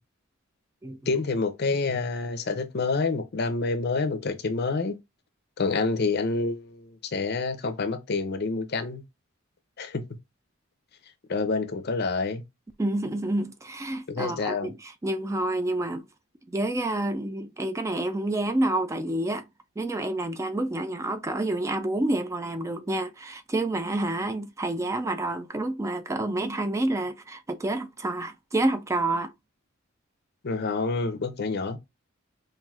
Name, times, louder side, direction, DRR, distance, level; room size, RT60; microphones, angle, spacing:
voice 1, 1.1-5.0 5.6-9.0 9.8-10.0 11.3-12.4 14.1-14.7 30.4-31.8, left 3 dB, 50° left, 0.6 m, -28 dB
voice 2, 12.8-16.1 16.5-19.4 19.8-29.3, right 1 dB, 15° right, 0.3 m, -28 dB
5.6 x 2.6 x 2.4 m
head